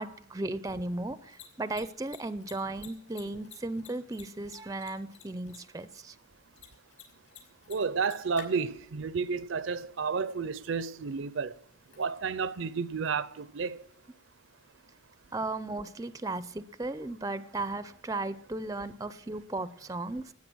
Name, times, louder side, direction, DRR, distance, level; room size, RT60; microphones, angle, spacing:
voice 1, 0.0-6.2 15.3-20.3, right 2 dB, 15° right, 0.5 m, -36 dB
Mechanisms, 1.1-14.7, left 8 dB, 60° left, 5.8 m, -56 dB
voice 2, 7.7-11.5 12.0-13.8, right 5 dB, 70° right, 0.5 m, -31 dB
18.0 x 9.5 x 6.2 m
head